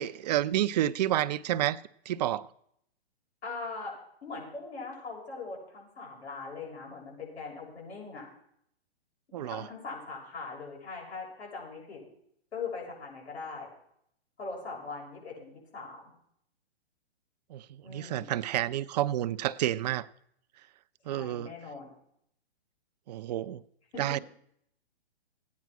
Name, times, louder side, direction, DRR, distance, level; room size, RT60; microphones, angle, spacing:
voice 1, 0.0-1.8 2.1-2.5 9.3-9.7 17.5-20.1 21.1-21.5 23.1-23.6 24.0-24.2, right 12 dB, 40° right, 0.6 m, -30 dB
voice 2, 3.4-3.9 4.2-8.3 9.4-12.0 12.5-13.7 14.4-16.0 17.8-18.3 21.1-21.9 23.9-24.0, left 4 dB, 80° left, 7.3 m, -41 dB
15.0 x 9.5 x 6.1 m
hypercardioid pair, 140°, 33 cm